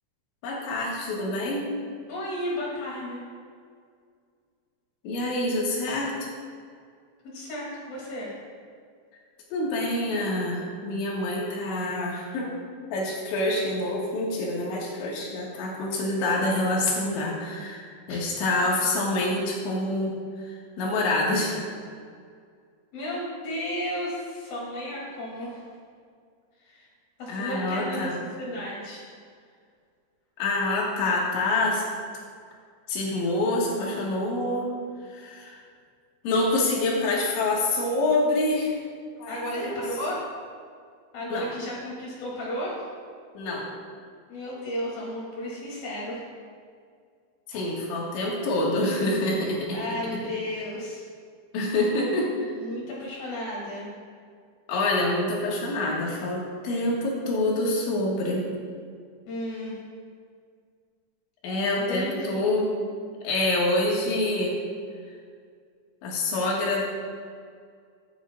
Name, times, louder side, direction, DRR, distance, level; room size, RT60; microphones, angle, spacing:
voice 1, 0.4-1.7 5.0-6.3 9.5-12.5 12.9-20.1 20.4-21.7 27.3-28.1 30.4-31.8 32.9-34.7 35.1-35.6 36.2-38.7 39.2-39.7 41.3-41.5 43.4-43.7 47.5-49.8 51.5-52.5 54.7-58.4 61.4-62.7 63.2-64.5 66.0-66.8, left 2 dB, 85° left, -3 dB, 4.1 m, -26 dB
voice 2, 2.1-3.2 7.2-8.3 18.1-18.2 22.9-25.7 26.6-26.9 27.2-28.1 28.4-29.1 39.3-40.2 41.1-42.9 44.3-46.2 47.5-47.7 49.7-51.0 52.5-53.9 59.3-59.8 61.8-62.6, left 1 dB, 55° left, -5 dB, 4.4 m, -33 dB
14.5 x 10.0 x 2.5 m, 2.1 s
omnidirectional pair, 5.3 m